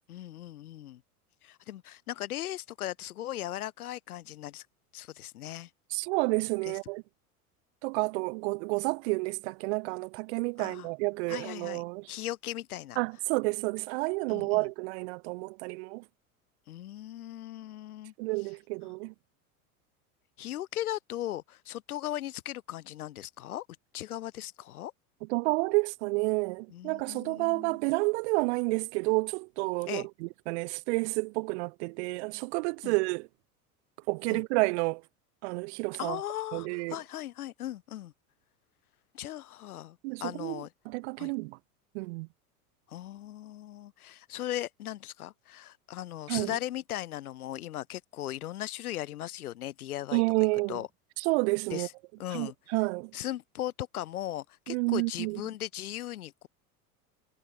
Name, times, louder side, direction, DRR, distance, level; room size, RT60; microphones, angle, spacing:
voice 1, 0.1-1.0 1.4-4.7 4.9-5.7 6.7-6.8 10.6-10.9 11.3-11.8 12.1-13.0 14.3-14.7 16.7-18.1 20.4-23.7 23.9-24.9 26.7-27.8 29.9-30.1 32.8-32.9 34.3-34.4 36.0-38.1 39.1-40.7 41.2-41.3 42.9-50.2 50.7-50.9 51.7-51.9 52.2-52.5 53.1-56.5, left 13 dB, 75° left, 1.3 m, -38 dB
voice 2, 5.9-7.0 7.8-12.1 13.0-16.0 18.2-19.1 25.3-33.3 34.1-35.0 35.4-36.2 36.5-37.0 40.0-41.6 41.9-42.3 46.3-46.5 50.1-50.8 51.2-51.9 52.3-53.1 54.7-55.4, right 27 dB, 50° right, 0.5 m, -30 dB
hypercardioid pair, 85°, 44 cm